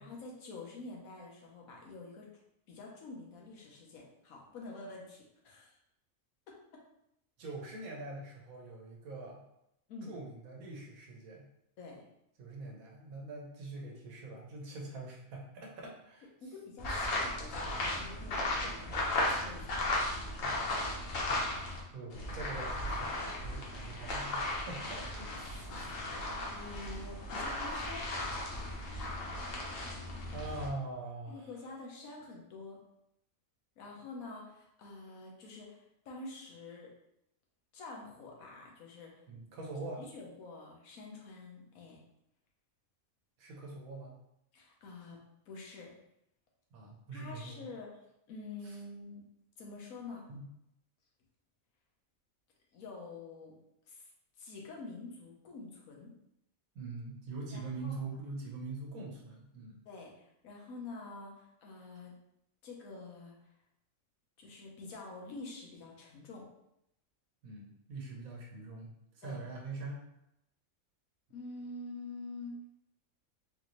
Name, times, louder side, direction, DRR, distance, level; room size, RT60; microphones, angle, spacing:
voice 1, 0.0-2.3 2.7-5.8 9.9-10.1 11.8-12.1 16.4-19.8 25.7-25.9 26.5-28.1 31.3-32.8 33.8-36.9 37.7-39.1 40.0-42.0 44.5-45.2 45.5-45.9 47.1-49.2 49.6-50.3 52.7-53.6 53.9-54.1 54.4-56.1 57.5-58.0 59.9-62.1 62.6-63.5 64.4-66.5 69.2-69.4 71.3-72.7, left 3 dB, 90° left, -2 dB, 1.3 m, -47 dB
voice 2, 7.4-9.4 10.1-11.5 12.4-16.3 20.4-20.7 21.3-21.7 21.9-23.1 23.4-25.9 30.3-31.5 39.3-40.0 43.4-44.2 46.7-47.7 48.6-48.8 50.3-50.5 56.7-59.8 67.4-70.1, right 3 dB, 85° right, -2 dB, 1.3 m, -44 dB
sound 1, 16.8-21.8 22.1-30.7, left 2 dB, 70° left, 1.2 m, -36 dB
3.9 x 2.6 x 3.0 m, 0.81 s
omnidirectional pair, 1.4 m